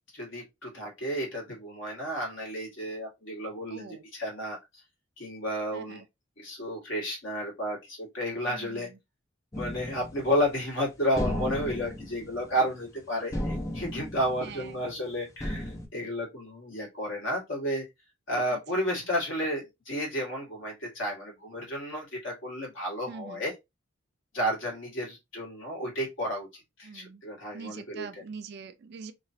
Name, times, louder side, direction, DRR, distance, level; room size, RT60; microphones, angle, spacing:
voice 1, 0.1-4.6 5.2-6.0 6.4-8.9 9.6-17.8 18.3-23.5 24.3-26.5 26.8-28.1, equal, 65° left, 1.6 m, -32 dB
voice 2, 3.7-4.0 5.7-6.1 8.4-9.0 14.4-14.8 18.5-18.6 23.1-23.5 26.8-27.2 27.5-29.1, right 5 dB, 50° right, 0.4 m, -43 dB
sound 1, 9.5-10.7 11.2-13.0 13.3-15.0 15.4-15.9, left 1 dB, 15° left, 0.5 m, -35 dB
3.1 x 2.4 x 2.6 m
head